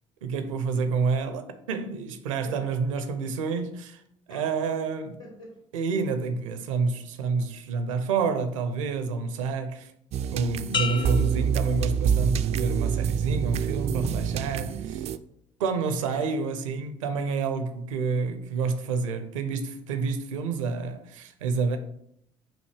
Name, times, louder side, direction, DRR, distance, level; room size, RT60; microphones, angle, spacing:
voice 1, 0.2-4.0 4.3-5.2 5.7-9.9 10.3-15.1 15.6-21.8, right 4 dB, 75° right, 0.7 m, -28 dB
voice 2, 5.2-5.6 16.0-16.3, left 2 dB, 80° left, 2.4 m, -45 dB
sound 1, 10.1-15.2, right 7 dB, 40° right, 0.4 m, -26 dB
sound 2, 10.7-12.5 13.0-13.5, left 5 dB, 30° left, 0.6 m, -34 dB
7.4 x 2.7 x 4.8 m
figure-of-eight pair, 55°, 17 cm